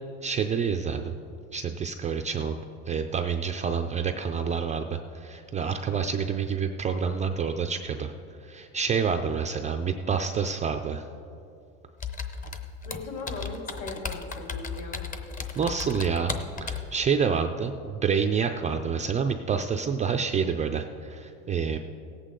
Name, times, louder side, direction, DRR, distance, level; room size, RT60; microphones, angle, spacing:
voice 1, 0.2-1.1 1.5-2.6 2.9-8.1 8.4-11.1 15.6-16.4 16.6-21.8, right 6 dB, 20° right, 6 dB, 0.3 m, -28 dB
Computer keyboard, 12.0-16.9, left 5 dB, 25° left, 0.7 m, -35 dB
voice 2, 12.8-15.0, left 3 dB, 60° left, 0 dB, 3.1 m, -38 dB
17.5 x 8.3 x 3.8 m, 2.6 s
supercardioid pair, 120°, 35 cm